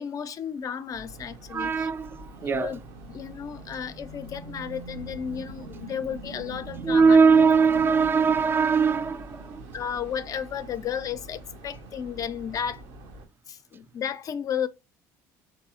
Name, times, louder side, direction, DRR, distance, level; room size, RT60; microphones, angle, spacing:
voice 1, 0.0-1.9 2.5-2.8 3.1-7.2 9.7-12.8 13.5-14.7, left 8 dB, 45° left, 0.4 m, -33 dB
sound 1, 0.9-13.2, right 2 dB, 75° right, 0.9 m, -43 dB
voice 2, 1.5-2.7 6.8-9.6, right 5 dB, 25° right, 0.4 m, -21 dB
4.0 x 2.6 x 2.8 m
hypercardioid pair, 75°, 8 cm